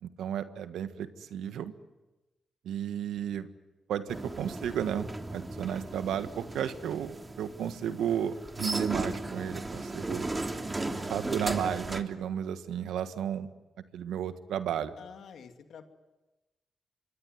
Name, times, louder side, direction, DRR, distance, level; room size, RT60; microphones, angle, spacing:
voice 1, 0.0-1.7 2.6-3.5 3.9-10.3 11.1-13.5 13.9-14.9, right 9 dB, 90° right, 10 dB, 1.5 m, -33 dB
sound 1, 4.1-12.0, right 2 dB, 25° right, 3.2 m, -36 dB
voice 2, 15.0-15.8, left 7 dB, 80° left, 6 dB, 2.6 m, -48 dB
26.5 x 23.5 x 9.4 m, 1.1 s
supercardioid pair, 55°, 0 cm